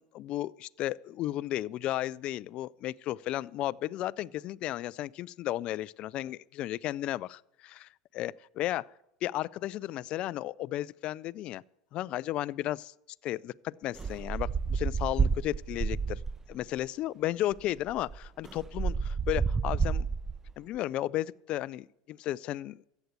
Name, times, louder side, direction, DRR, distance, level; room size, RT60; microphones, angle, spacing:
voice 1, 0.0-8.9 9.2-11.6 11.9-12.9 13.2-16.2 16.5-20.1 20.6-22.8, left 14 dB, 50° left, 0.4 m, -34 dB
sound 1, 14.0-16.5 17.5-17.6 17.9-20.5, right 5 dB, 20° right, 0.5 m, -30 dB
14.0 x 8.2 x 8.1 m
hypercardioid pair, 95°, 2 cm